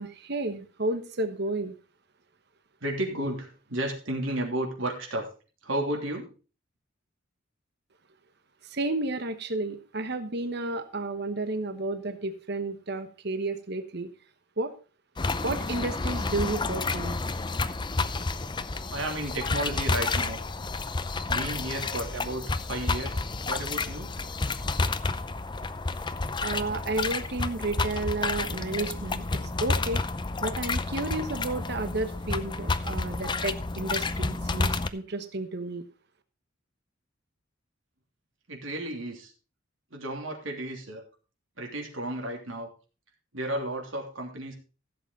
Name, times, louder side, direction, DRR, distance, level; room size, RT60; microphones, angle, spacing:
voice 1, 0.0-1.7 8.7-14.1 14.6-14.7 15.4-17.2 26.4-29.2 29.6-30.0 30.4-35.8, right 2 dB, 55° right, 9 dB, 1.1 m, -32 dB
voice 2, 2.8-5.3 5.6-6.3 18.9-20.4 21.3-24.1 38.5-39.3 39.9-41.0 41.6-42.7 43.3-44.5, right 1 dB, 75° right, 1 dB, 3.1 m, -33 dB
sound 1, 15.2-34.9, left 3 dB, 20° left, 0.5 m, -30 dB
15.0 x 7.9 x 4.0 m, 0.34 s
head